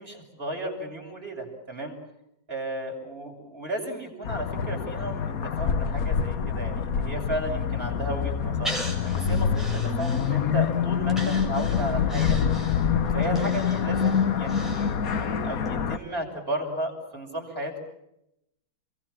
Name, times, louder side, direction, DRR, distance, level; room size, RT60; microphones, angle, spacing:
voice 1, 0.0-2.0 2.5-9.6 10.0-12.4 13.1-17.8, right 1 dB, 30° right, 0 dB, 7.7 m, -34 dB
sound 1, 4.2-16.0, left 7 dB, 50° left, 1.5 m, -26 dB
Breathing, 8.6-10.6 11.1-15.3 15.7-15.8, equal, ahead, 7.4 m, -38 dB
30.0 x 23.0 x 7.5 m, 0.84 s
omnidirectional pair, 2.1 m